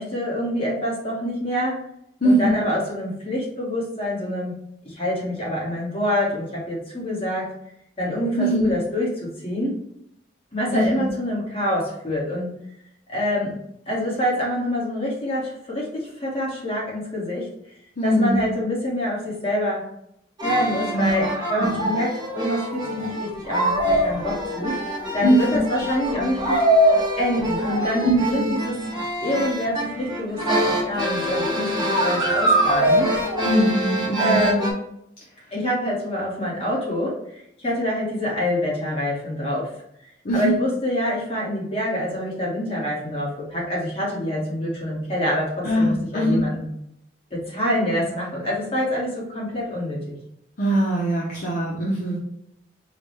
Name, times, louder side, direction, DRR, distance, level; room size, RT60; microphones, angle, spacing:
voice 1, 0.0-1.8 2.2-4.5 4.8-7.5 8.0-9.8 10.5-12.5 13.1-13.6 13.9-17.5 18.0-19.9 20.4-24.8 25.1-26.6 27.2-28.8 29.2-33.1 34.2-34.7 35.5-37.2 37.6-39.7 40.3-46.7 47.3-50.1, left 1 dB, 30° left, -5 dB, 1.4 m, -26 dB
voice 2, 2.2-2.5 8.4-8.7 10.7-11.1 18.0-18.4 20.9-21.3 21.6-21.8 25.2-25.6 28.0-28.5 33.4-34.5 40.2-40.6 45.6-46.5 50.6-52.2, right 1 dB, 50° left, -5 dB, 0.7 m, -21 dB
sound 1, 20.4-34.7, right 1 dB, 25° right, 0.9 m, -24 dB
4.7 x 2.2 x 3.2 m, 0.77 s
head